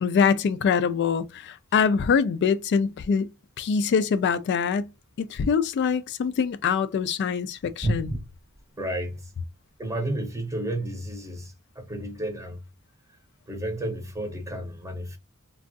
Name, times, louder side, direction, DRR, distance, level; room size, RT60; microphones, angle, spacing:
voice 1, 0.0-3.3 3.6-4.9 5.2-8.1, left 6 dB, 50° left, 0.3 m, -24 dB
voice 2, 7.8-8.2 8.8-9.3 9.8-12.6 13.5-15.2, right 1 dB, 15° right, 0.7 m, -31 dB
3.4 x 2.3 x 2.6 m
head